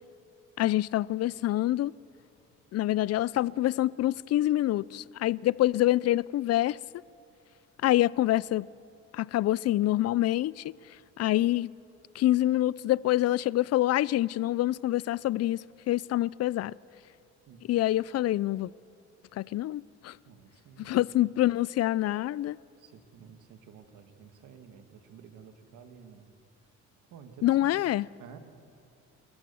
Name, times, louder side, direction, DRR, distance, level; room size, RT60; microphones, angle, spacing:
voice 1, 0.6-1.9 2.7-6.8 7.8-8.7 9.1-10.7 11.2-11.7 12.1-16.7 17.7-18.7 19.3-20.2 20.8-22.6 27.4-28.1, left 14 dB, 55° left, 0.4 m, -26 dB
voice 2, 20.3-21.0 22.8-26.3 27.1-27.7 28.2-28.4, right 7 dB, 85° right, 1.8 m, -51 dB
28.5 x 14.0 x 7.0 m
cardioid pair, 90°, 30 cm